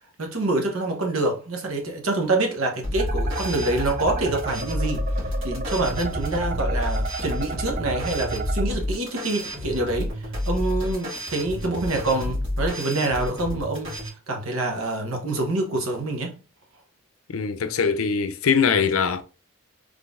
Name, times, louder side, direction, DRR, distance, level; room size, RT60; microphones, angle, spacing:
voice 1, 0.2-16.3, right 2 dB, 80° right, 0.9 m, -26 dB
sound 1, 2.8-14.1, left 1 dB, 65° right, 1.9 m, -30 dB
sound 2, 3.0-8.6, right 2 dB, 45° right, 0.5 m, -32 dB
voice 2, 17.3-19.2, left 6 dB, 80° left, 0.5 m, -22 dB
3.8 x 3.2 x 2.5 m
head